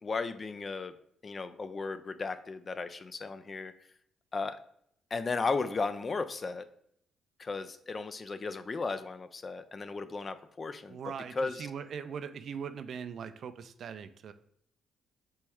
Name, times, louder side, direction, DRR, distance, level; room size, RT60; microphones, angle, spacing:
voice 1, 0.0-0.9 1.2-3.7 4.3-4.6 5.1-6.7 7.4-11.0 11.4-11.7, left 4 dB, 35° left, 12 dB, 0.3 m, -35 dB
voice 2, 10.9-14.3, right 7 dB, 60° right, 11 dB, 0.3 m, -40 dB
4.4 x 3.0 x 3.5 m, 0.69 s
cardioid pair, 90°, 0 cm